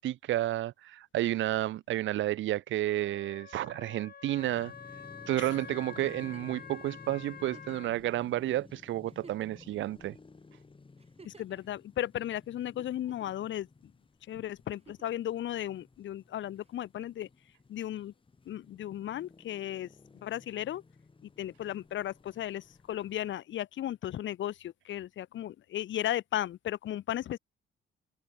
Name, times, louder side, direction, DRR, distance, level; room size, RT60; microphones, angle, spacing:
voice 1, 0.0-4.7 5.3-10.2, right 14 dB, 75° right, 0.7 m, -31 dB
Wind instrument woodwind instrument, 2.9-8.0, left 7 dB, 50° left, 5.7 m, -48 dB
sound 1, 4.4-23.3, left 4 dB, 25° left, 4.7 m, -55 dB
Giggle, 6.0-6.6 7.5-8.0 8.6-8.7 9.0-9.8 11.0-11.6 12.8-13.4 14.7-15.2 16.7-16.8, right 4 dB, 30° right, 5.3 m, -54 dB
voice 2, 11.3-13.7 14.3-17.3 17.7-18.1 18.5-19.9 20.2-20.8 21.4-27.4, left 12 dB, 70° left, 1.6 m, -35 dB
cardioid pair, 90°, 20 cm